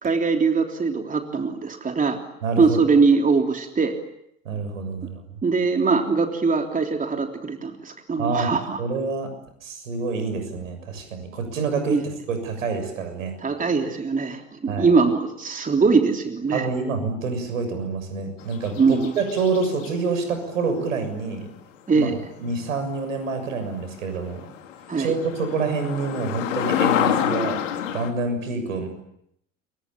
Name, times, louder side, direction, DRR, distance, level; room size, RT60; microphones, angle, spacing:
voice 1, 0.0-2.2 2.6-3.9 5.4-8.8 11.9-12.0 13.4-16.7 18.8-19.1 21.9-22.2 24.9-25.1, right 4 dB, 20° right, 4 dB, 3.4 m, -21 dB
voice 2, 2.4-2.8 4.5-5.4 8.2-8.5 8.8-9.3 9.6-12.0 12.3-13.4 14.7-14.9 16.5-21.5 21.9-22.1 22.4-24.5 25.0-27.6 27.9-28.9, right 4 dB, 75° right, 8 dB, 7.0 m, -27 dB
sound 1, 18.4-19.9 23.4-23.5 24.0-24.1 24.3-28.1, left 10 dB, 70° left, 2.9 m, -27 dB
28.5 x 23.5 x 8.7 m, 0.77 s
figure-of-eight pair, 70°, 40 cm